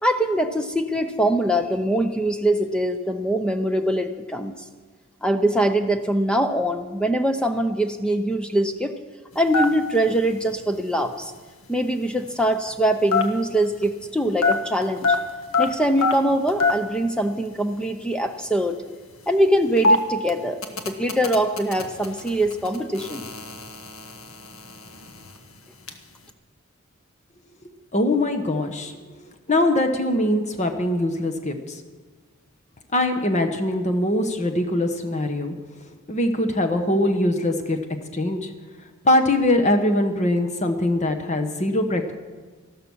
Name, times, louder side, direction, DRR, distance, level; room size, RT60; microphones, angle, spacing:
voice 1, 0.0-4.6 5.2-8.9 9.4-11.3 11.7-15.2 15.6-18.7 19.3-20.6 20.9-23.3, right 1 dB, 5° left, 7 dB, 0.6 m, -23 dB
sound 1, 9.3-14.1 14.4-17.0 17.2-17.3 17.5-17.8 18.4-26.0, left 3 dB, 70° left, 1.2 m, -25 dB
voice 2, 27.9-28.9 29.5-31.8 32.9-35.5 36.1-37.8 38.1-38.5 39.0-42.1, left 1 dB, 30° left, 6 dB, 1.1 m, -22 dB
13.5 x 12.5 x 6.3 m, 1.4 s
head